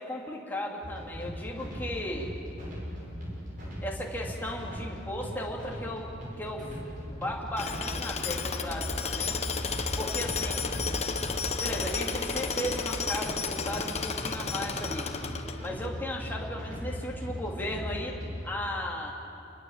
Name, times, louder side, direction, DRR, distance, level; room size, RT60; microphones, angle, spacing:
voice 1, 0.0-2.3 3.8-6.1 6.4-6.6 7.0-9.3 10.0-10.8 11.6-15.1 15.6-18.2 18.4-19.1, left 1 dB, 10° left, -2 dB, 2.7 m, -36 dB
sound 1, 0.8-18.5, equal, 40° right, 5.7 m, -38 dB
Tools, 7.6-15.9, left 5 dB, 30° left, 1.1 m, -33 dB
27.5 x 20.5 x 7.3 m, 2.8 s
head